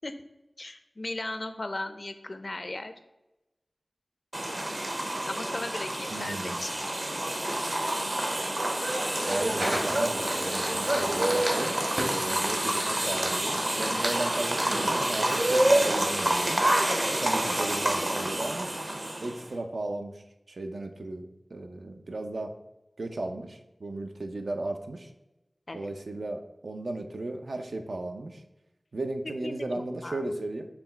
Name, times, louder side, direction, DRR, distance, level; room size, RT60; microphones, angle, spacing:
voice 1, 0.6-2.9 5.2-6.7 16.9-17.1 25.7-25.9 29.4-29.5 30.0-30.2, left 2 dB, 50° left, 9 dB, 0.4 m, -36 dB
sound 1, 4.3-19.5, right 1 dB, 45° right, 0.6 m, -28 dB
voice 2, 6.1-6.6 9.3-11.7 12.1-16.6 17.2-18.7 19.2-22.6 23.0-25.1 25.7-28.4 28.9-30.7, right 2 dB, 80° right, 5 dB, 0.4 m, -35 dB
Fire, 7.9-19.3, right 1 dB, 60° right, 1.3 m, -38 dB
5.9 x 2.3 x 3.9 m, 0.98 s
wide cardioid pair, 55°, 0 cm